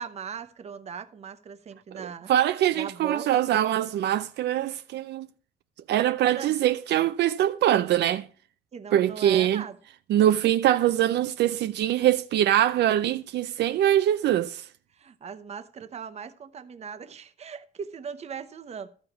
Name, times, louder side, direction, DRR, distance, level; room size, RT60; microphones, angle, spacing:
voice 1, 0.0-2.3 2.7-3.3 6.3-6.6 8.7-9.8 14.9-18.9, right 6 dB, 40° right, 0.9 m, -39 dB
voice 2, 1.9-5.3 5.9-8.3 8.9-9.6 10.1-14.7, right 12 dB, 75° right, 0.5 m, -23 dB
13.5 x 4.9 x 7.3 m
cardioid pair, 155°, 18 cm